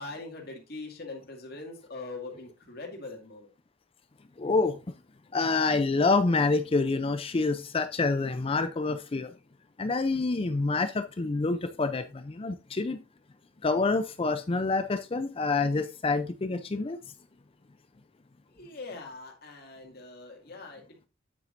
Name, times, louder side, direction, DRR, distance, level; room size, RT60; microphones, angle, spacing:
voice 1, 0.0-3.5 13.7-13.8 18.5-21.1, left 3 dB, 55° left, 2.2 m, -42 dB
voice 2, 4.4-4.8 5.3-9.3 9.8-13.0 13.6-17.0, left 3 dB, 30° left, 0.4 m, -27 dB
8.5 x 7.6 x 2.6 m
head